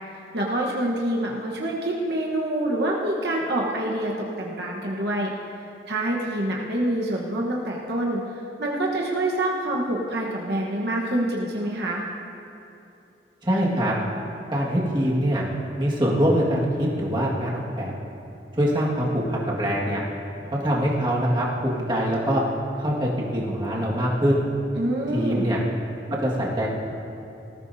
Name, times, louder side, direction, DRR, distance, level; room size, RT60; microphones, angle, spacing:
voice 1, 0.3-5.3 5.9-8.2 8.6-12.0 24.8-25.5, right 1 dB, 65° right, -2 dB, 1.2 m, -26 dB
voice 2, 13.4-13.9 14.5-15.4 15.8-17.9 18.5-20.0 20.6-22.4 22.8-24.5 25.1-25.6 26.2-26.7, equal, 25° right, -5 dB, 1.8 m, -23 dB
19.0 x 14.5 x 2.8 m, 2.8 s
head